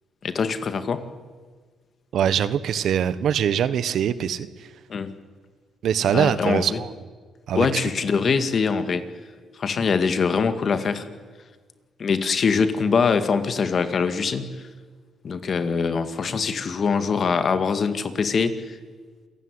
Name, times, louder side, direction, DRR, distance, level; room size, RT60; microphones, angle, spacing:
voice 1, 0.2-1.1 4.9-5.1 6.1-6.8 7.5-9.1 9.6-11.1 12.0-14.6 15.2-18.8, left 5 dB, 45° left, 10 dB, 2.1 m, -23 dB
voice 2, 2.1-4.7 5.8-6.9 7.5-7.8, right 9 dB, 70° right, 14 dB, 1.2 m, -23 dB
28.0 x 16.0 x 9.9 m, 1.5 s
cardioid pair, 90°, 0 cm